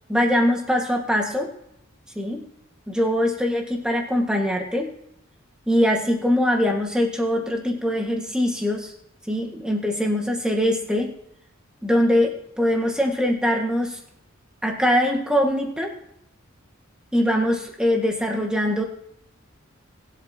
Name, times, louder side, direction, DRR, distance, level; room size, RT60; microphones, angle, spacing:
voice 1, 0.1-1.5 2.2-2.4 2.9-4.9 5.7-8.9 9.3-11.1 11.8-14.0 14.6-15.9 17.1-18.8, equal, 5° right, 0 dB, 1.8 m, -22 dB
20.0 x 8.3 x 2.9 m, 0.75 s
head